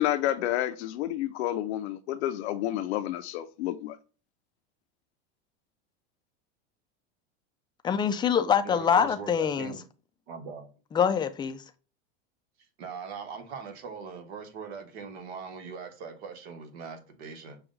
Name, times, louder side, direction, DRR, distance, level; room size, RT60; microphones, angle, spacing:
voice 1, 0.0-4.0, left 13 dB, 75° left, 0.6 m, -29 dB
voice 2, 7.8-9.7 10.9-11.6, left 7 dB, 15° left, 0.4 m, -25 dB
voice 3, 8.6-9.8 10.3-10.7 12.8-17.6, right 5 dB, 70° right, 1.4 m, -41 dB
5.9 x 2.4 x 3.8 m
supercardioid pair, 115°, 33 cm